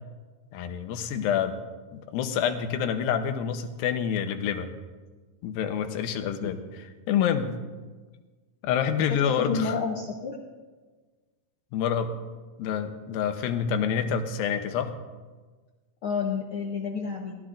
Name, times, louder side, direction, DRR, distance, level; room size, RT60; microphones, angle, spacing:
voice 1, 0.5-1.6 1.9-4.7 5.4-6.6 7.1-7.6 8.6-9.8 11.7-12.1 12.6-14.9, left 8 dB, 85° left, 7 dB, 2.7 m, -27 dB
voice 2, 9.4-10.4 16.0-17.4, left 5 dB, 70° left, -1 dB, 1.3 m, -30 dB
20.0 x 13.5 x 2.5 m, 1.4 s
omnidirectional pair, 4.1 m